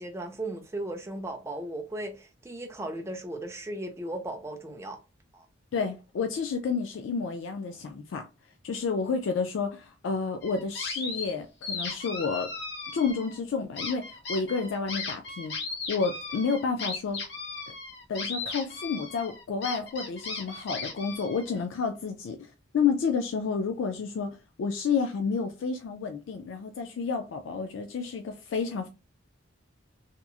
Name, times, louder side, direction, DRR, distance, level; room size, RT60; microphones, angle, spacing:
voice 1, 0.0-5.0 5.3-5.5, right 1 dB, 15° right, 0.4 m, -36 dB
voice 2, 5.7-8.3 8.6-12.5 12.9-15.5 15.9-17.2 18.1-28.9, left 5 dB, 75° left, 0.3 m, -30 dB
sound 1, 10.4-11.3 11.6-13.4 13.8-21.6, left 4 dB, 55° left, 0.9 m, -36 dB
2.9 x 2.3 x 2.3 m
head